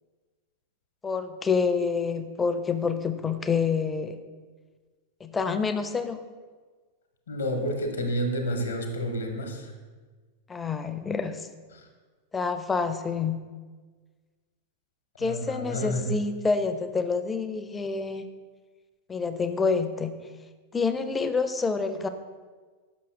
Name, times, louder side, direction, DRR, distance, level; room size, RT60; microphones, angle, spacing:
voice 1, 1.0-4.2 5.2-6.2 10.5-11.5 12.3-13.4 15.2-18.3 19.1-20.2 20.7-22.1, left 5 dB, 15° left, 10 dB, 0.4 m, -27 dB
voice 2, 7.3-9.6 15.2-16.0, equal, 70° left, 4 dB, 0.8 m, -29 dB
6.2 x 5.6 x 3.2 m, 1.4 s
figure-of-eight pair, 90°, 0 cm